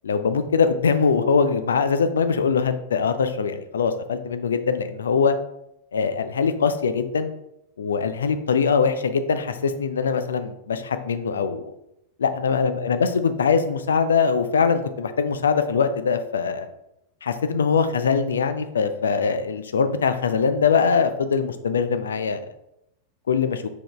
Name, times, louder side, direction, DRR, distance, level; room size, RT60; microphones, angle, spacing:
voice 1, 0.0-5.4 5.9-7.3 7.8-11.7 12.2-16.7 17.2-22.4 23.3-23.6, left 5 dB, 70° left, 10 dB, 0.5 m, -22 dB
6.2 x 4.8 x 3.4 m, 0.82 s
figure-of-eight pair, 90°, 0 cm